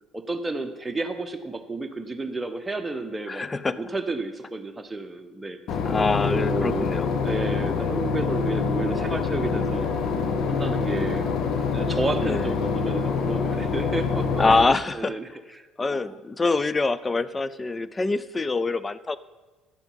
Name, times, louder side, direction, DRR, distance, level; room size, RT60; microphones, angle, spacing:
voice 1, 0.1-3.5 3.8-5.6 6.3-6.9 7.2-9.9 10.4-11.3 11.7-14.3 14.6-15.3 15.5-15.6 15.9-16.2, right 2 dB, 15° right, 5 dB, 1.1 m, -31 dB
voice 2, 3.3-3.8 5.8-7.1 12.2-12.5 14.4-15.2 15.8-19.2, left 3 dB, 25° left, 16 dB, 0.5 m, -24 dB
Boat Water vehicle / Engine, 5.7-14.6, left 5 dB, 60° left, 1.0 m, -26 dB
10.0 x 7.0 x 5.6 m, 1.2 s
hypercardioid pair, 60°, 0 cm